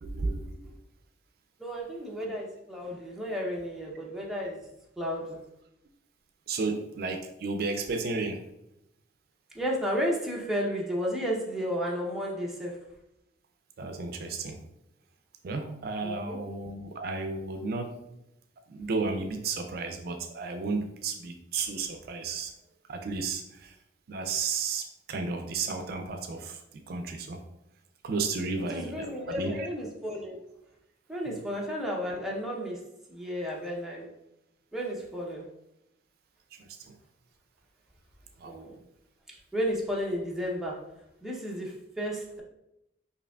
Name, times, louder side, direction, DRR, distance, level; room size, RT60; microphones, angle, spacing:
voice 1, 0.0-0.8 6.5-8.4 13.8-14.6 15.4-17.9 18.7-22.5 22.9-23.8 24.1-27.4 28.0-29.7 31.3-31.4 36.5-36.9 38.4-38.6, right 4 dB, 55° right, 5 dB, 0.4 m, -33 dB
voice 2, 1.6-4.7 5.0-5.4 9.5-12.8 16.0-16.4 28.7-30.4 31.1-34.1 34.7-35.5 38.4-38.8 39.5-40.8 41.2-42.4, equal, ahead, -3 dB, 0.5 m, -33 dB
4.7 x 2.7 x 2.2 m, 0.84 s
head